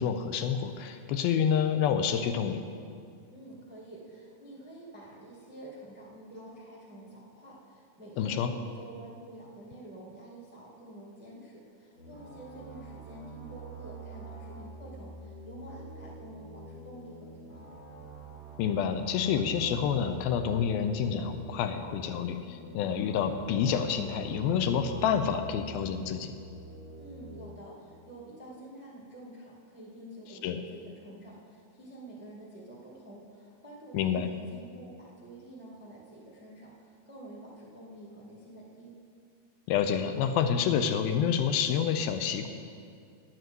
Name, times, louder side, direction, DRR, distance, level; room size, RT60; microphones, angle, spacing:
voice 1, 0.0-2.6 8.2-8.5 18.6-26.3 30.4-30.6 33.9-34.3 39.7-42.5, left 7 dB, 80° left, 8 dB, 2.4 m, -28 dB
voice 2, 3.3-17.7 27.0-38.9, right 1 dB, 15° right, -5 dB, 0.4 m, -48 dB
sound 1, 12.0-27.5, right 3 dB, 30° left, 3.1 m, -46 dB
10.5 x 9.1 x 7.7 m, 2.3 s
omnidirectional pair, 4.5 m